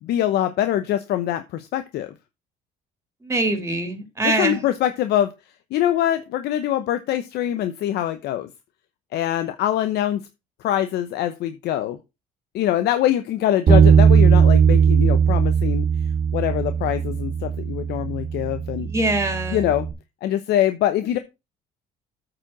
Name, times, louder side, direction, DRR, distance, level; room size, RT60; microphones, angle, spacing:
voice 1, 0.0-2.1 4.2-5.3 5.7-8.5 9.1-10.2 10.6-12.0 12.5-18.9 19.5-19.9 20.2-21.2, left 12 dB, 75° left, 9 dB, 0.8 m, -24 dB
voice 2, 3.2-4.6 18.8-19.7, right 2 dB, 15° right, 6 dB, 2.8 m, -23 dB
Bass guitar, 13.7-19.9, right 7 dB, 50° right, 2.1 m, -18 dB
8.7 x 4.9 x 6.0 m, 0.25 s
cardioid pair, 110°, 17 cm